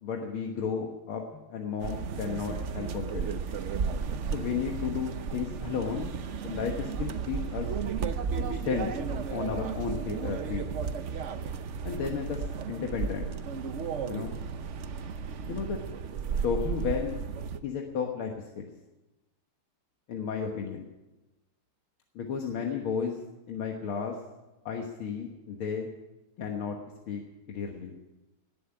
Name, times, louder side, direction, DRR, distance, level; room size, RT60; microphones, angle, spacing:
voice 1, 0.0-3.3 4.3-6.1 6.4-7.7 8.5-9.0 9.3-10.6 11.8-13.3 14.1-14.3 15.5-15.8 16.4-17.2 17.6-18.7 20.1-20.9 22.2-23.2 23.5-24.2 24.7-25.9 26.4-26.8 27.1-27.2 27.5-27.9, left 6 dB, 75° left, 2 dB, 2.2 m, -33 dB
sound 1, 1.8-17.6, right 6 dB, 65° right, 0.7 m, -34 dB
19.0 x 7.8 x 9.6 m, 1.1 s
omnidirectional pair, 2.3 m